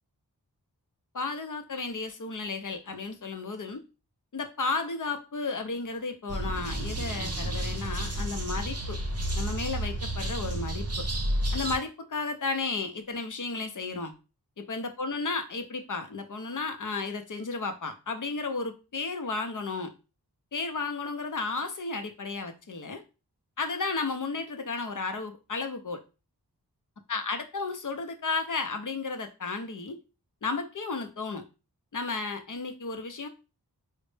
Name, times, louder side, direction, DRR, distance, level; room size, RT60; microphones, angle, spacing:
voice 1, 1.1-3.8 4.3-9.0 9.4-11.1 11.5-14.1 14.6-19.9 20.5-23.0 23.6-26.0 27.1-30.0 30.4-31.4 31.9-33.3, left 4 dB, 50° left, 7 dB, 0.7 m, -33 dB
sound 1, 6.3-11.8, right 1 dB, 40° right, 0.7 m, -31 dB
4.0 x 2.1 x 3.2 m, 0.30 s
wide cardioid pair, 45°, 40 cm